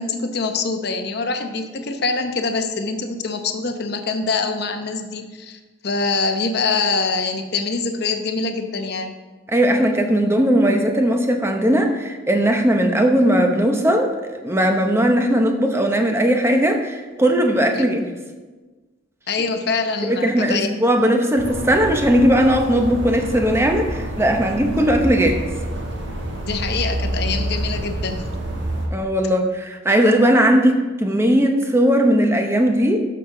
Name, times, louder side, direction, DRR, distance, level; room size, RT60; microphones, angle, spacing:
voice 1, 0.0-9.1 17.7-17.9 19.3-20.8 26.4-28.3, left 4 dB, 55° left, 6 dB, 0.9 m, -24 dB
voice 2, 9.5-18.1 20.1-25.5 28.9-33.1, equal, 15° right, 4 dB, 0.9 m, -18 dB
sound 1, 21.4-28.9, right 1 dB, 60° right, 1.5 m, -27 dB
12.5 x 6.7 x 3.8 m, 1.3 s
head